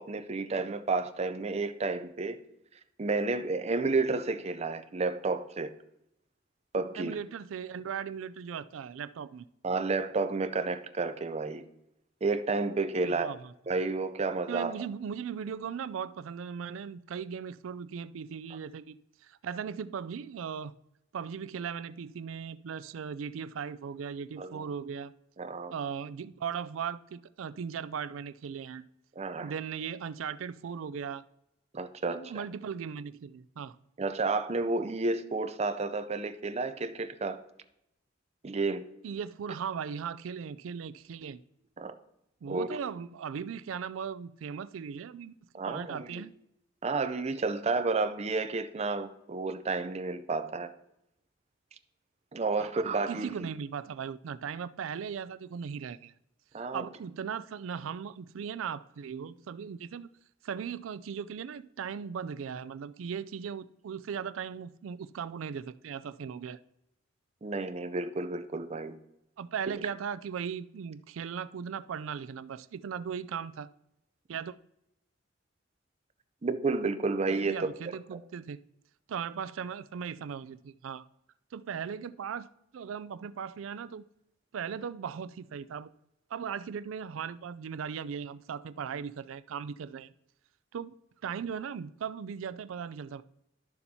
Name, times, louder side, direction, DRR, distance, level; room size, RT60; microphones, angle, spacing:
voice 1, 0.0-2.4 3.0-5.7 6.7-7.1 9.6-11.6 12.2-13.3 13.7-14.7 24.4-24.7 25.4-25.7 29.2-29.5 31.7-32.4 34.0-37.4 38.4-38.8 41.8-41.9 42.5-42.7 45.5-46.2 46.8-50.7 52.3-53.5 56.5-56.9 67.4-69.0 76.4-78.2, right 3 dB, 35° right, 0.5 m, -31 dB
voice 2, 7.0-9.5 13.0-13.5 14.5-19.0 19.2-20.7 21.1-25.1 25.7-28.9 29.4-31.2 32.1-33.8 39.0-41.4 42.4-45.3 45.7-46.3 52.6-56.1 56.6-60.1 60.4-66.6 69.4-73.7 74.3-74.5 77.4-78.6 79.1-81.1 81.5-84.0 84.5-85.9 86.3-90.1 90.7-90.9 91.2-93.2, right 7 dB, 90° right, 0.4 m, -38 dB
12.0 x 7.0 x 2.8 m
head